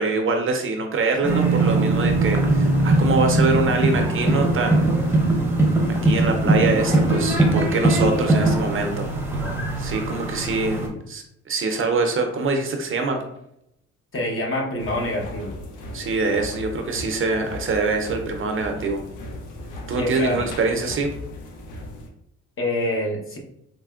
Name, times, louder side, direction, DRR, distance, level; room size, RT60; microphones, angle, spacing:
voice 1, 0.0-4.9 6.0-9.1 9.8-13.2 15.9-19.0 19.9-21.1, right 3 dB, 45° right, 4 dB, 0.5 m, -24 dB
sound 1, 1.2-10.9, right 2 dB, 5° right, 0.7 m, -20 dB
voice 2, 14.1-15.5 20.0-20.5 22.6-23.4, left 1 dB, 45° left, -1 dB, 0.9 m, -26 dB
sound 2, 14.8-22.1, left 2 dB, 85° left, 0.6 m, -37 dB
4.1 x 2.1 x 2.3 m, 0.78 s
cardioid pair, 90°, 30 cm